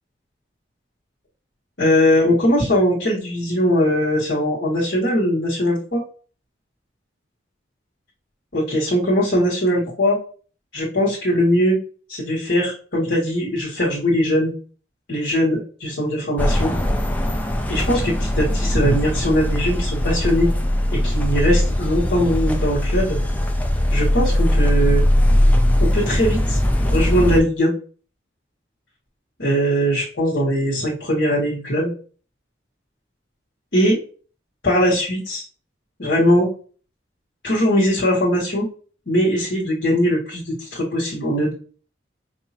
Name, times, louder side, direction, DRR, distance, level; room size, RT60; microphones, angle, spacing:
voice 1, 1.8-6.0 8.5-10.2 10.7-11.8 12.1-14.5 15.1-16.7 17.7-20.5 20.9-23.2 23.9-25.0 25.8-26.6 26.8-27.7 29.4-31.9 33.7-34.0 34.6-35.4 36.0-36.5 37.4-38.6 39.1-41.5, equal, 70° left, -6 dB, 1.5 m, -20 dB
sound 1, 16.4-27.4, left 1 dB, 10° left, 0.4 m, -20 dB
5.3 x 2.8 x 2.8 m, 0.40 s
head